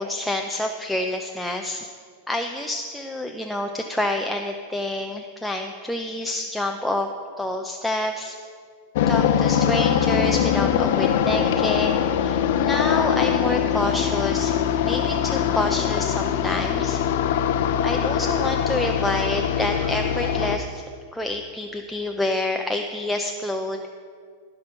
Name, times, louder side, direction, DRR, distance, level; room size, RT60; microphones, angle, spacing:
voice 1, 0.0-1.9 2.3-7.1 7.4-8.4 9.1-14.6 14.8-17.0 17.8-20.9 21.1-23.8, left 1 dB, 5° left, 3 dB, 0.6 m, -28 dB
sound 1, 9.0-20.6, left 9 dB, 65° left, 0.6 m, -22 dB
15.5 x 5.3 x 5.7 m, 2.1 s
hypercardioid pair, 125°, 0 cm